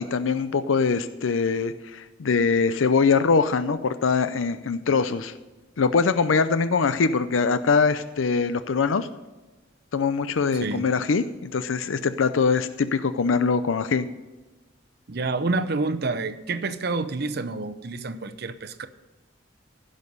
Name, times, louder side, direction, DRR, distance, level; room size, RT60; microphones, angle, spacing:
voice 1, 0.0-5.3 5.8-9.1 9.9-14.1, left 5 dB, 90° left, 12 dB, 0.5 m, -23 dB
voice 2, 15.1-18.9, right 3 dB, 55° right, 9 dB, 0.7 m, -28 dB
15.5 x 6.4 x 5.4 m, 1.2 s
head